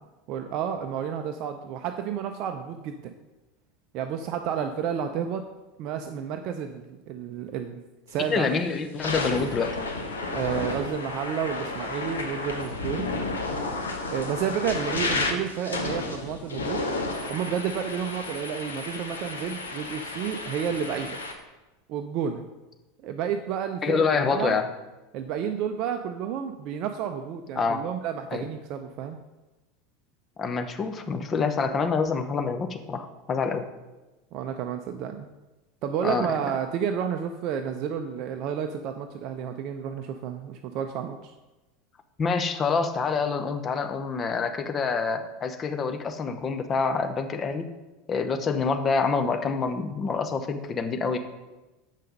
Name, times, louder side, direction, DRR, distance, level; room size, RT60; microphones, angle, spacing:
voice 1, 0.3-3.1 3.9-5.5 5.8-7.8 8.1-8.5 10.3-13.1 14.1-16.8 17.3-21.2 21.9-22.4 23.0-24.6 25.1-29.2 34.3-35.3 35.8-41.3, right 8 dB, 50° right, 6 dB, 0.5 m, -31 dB
sound 1, 8.1-8.4 8.9-21.3, left 3 dB, 80° left, 1.0 m, -32 dB
voice 2, 8.3-9.8 23.8-24.7 27.5-27.8 28.3-28.5 30.4-33.7 36.0-36.3 42.2-47.7 48.1-51.2, left 5 dB, 30° left, 7 dB, 0.8 m, -27 dB
7.3 x 5.6 x 5.2 m, 1.1 s
figure-of-eight pair, 80°, 0 cm